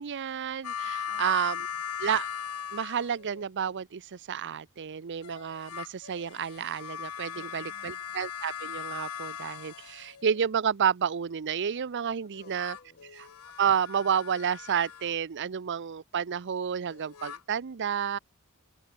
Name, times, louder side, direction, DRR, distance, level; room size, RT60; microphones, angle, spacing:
voice 1, 0.0-1.5 2.0-2.3 2.7-12.8 13.1-13.2 13.6-18.2, right 8 dB, 55° right, 0.5 m, -30 dB
sound 1, 0.6-3.5 5.2-10.4 12.3-15.1 16.9-17.4, left 8 dB, 80° left, 0.8 m, -39 dB
voice 2, 1.1-1.8 7.3-8.2 12.4-13.1, left 4 dB, 40° left, 8.0 m, -56 dB
open air
head